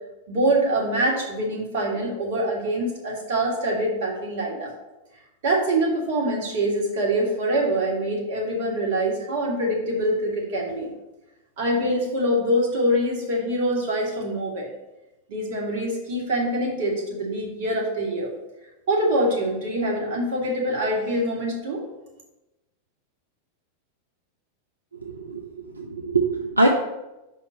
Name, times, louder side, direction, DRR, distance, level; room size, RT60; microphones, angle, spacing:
voice 1, 0.3-4.7 5.4-10.9 11.6-14.7 15.3-18.3 18.9-21.8, right 1 dB, 50° right, -1 dB, 1.6 m, -24 dB
voice 2, 25.0-25.4 25.8-26.7, right 2 dB, 80° right, 1 dB, 0.5 m, -23 dB
5.6 x 3.7 x 5.3 m, 0.99 s
figure-of-eight pair, 90°, 0 cm